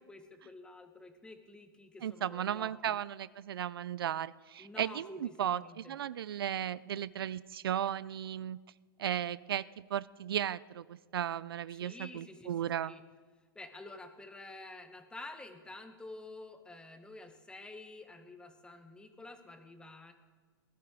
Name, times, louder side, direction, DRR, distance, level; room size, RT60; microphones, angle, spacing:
voice 1, 0.1-3.0 4.6-6.0 11.8-13.0 13.5-20.1, left 2 dB, 5° left, 7 dB, 1.3 m, -49 dB
voice 2, 2.0-8.6 9.0-12.9, right 10 dB, 75° right, 19 dB, 0.4 m, -35 dB
20.0 x 12.0 x 3.7 m, 1.5 s
hypercardioid pair, 120°, 12 cm